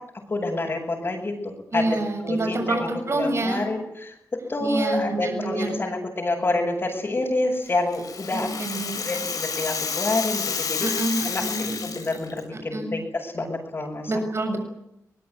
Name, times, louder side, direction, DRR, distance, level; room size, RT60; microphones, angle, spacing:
voice 1, 0.3-2.0 2.2-10.9 11.2-14.1, left 2 dB, 40° left, -4 dB, 7.3 m, -28 dB
voice 2, 1.7-3.7 4.6-5.8 8.3-9.1 10.8-11.8 12.5-12.9 14.1-14.6, right 2 dB, 50° right, 5 dB, 7.1 m, -27 dB
Rattle (instrument), 7.7-12.4, left 6 dB, 90° left, 7.5 m, -30 dB
24.0 x 20.5 x 9.7 m, 0.80 s
wide cardioid pair, 90°, 6 cm